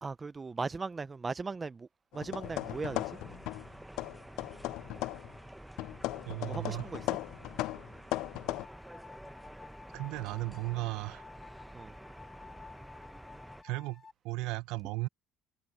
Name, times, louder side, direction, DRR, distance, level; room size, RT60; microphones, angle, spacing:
voice 1, 0.0-3.2 6.4-7.0 11.7-11.9, right 4 dB, 25° right, 0.4 m, -38 dB
sound 1, 2.1-3.7 4.0-5.3 5.8-8.6, left 18 dB, 75° left, 0.3 m, -37 dB
sound 2, 2.4-13.6, right 1 dB, 5° right, 1.0 m, -50 dB
voice 2, 6.3-6.9 9.9-11.3 13.6-15.1, right 19 dB, 80° right, 0.7 m, -36 dB
sound 3, 8.5-14.1, left 4 dB, 25° left, 1.4 m, -53 dB
cardioid pair, 110°, 0 cm